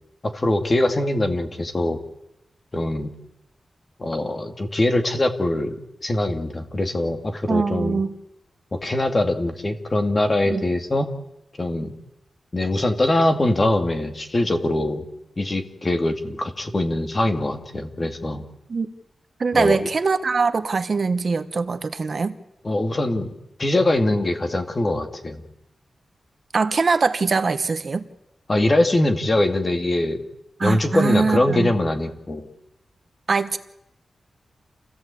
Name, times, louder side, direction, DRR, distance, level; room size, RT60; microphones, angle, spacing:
voice 1, 0.2-2.0 2.7-3.1 4.0-8.0 8.7-11.1 11.6-11.9 12.5-15.0 15.4-18.4 19.5-19.9 22.6-25.4 28.5-30.2 30.6-32.5, left 1 dB, 30° left, 6 dB, 2.3 m, -22 dB
voice 2, 7.5-8.1 10.5-10.6 18.7-18.9 19.4-22.3 26.5-28.0 30.6-31.7 33.3-33.6, right 4 dB, 45° right, 9 dB, 1.2 m, -22 dB
28.5 x 16.5 x 8.4 m, 0.87 s
wide cardioid pair, 140°, 0 cm